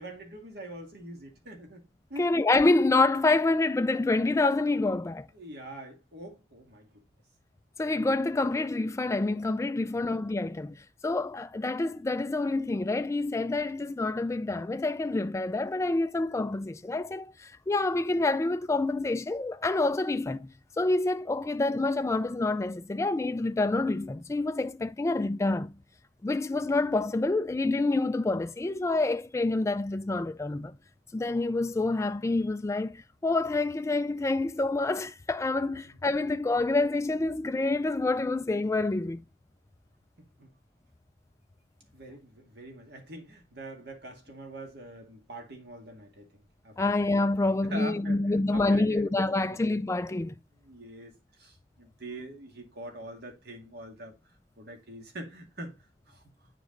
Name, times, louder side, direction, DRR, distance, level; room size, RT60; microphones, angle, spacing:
voice 1, 0.0-2.3 5.3-7.0 9.8-10.1 40.2-40.5 41.9-46.9 47.4-49.6 50.6-55.8 56.1-56.2, right 1 dB, 65° right, 2.1 m, -44 dB
voice 2, 2.2-5.3 7.8-10.8 11.0-20.5 20.8-25.7 26.2-30.7 31.1-39.2 46.8-50.3, left 2 dB, 15° left, 0.3 m, -27 dB
9.2 x 5.0 x 3.8 m
head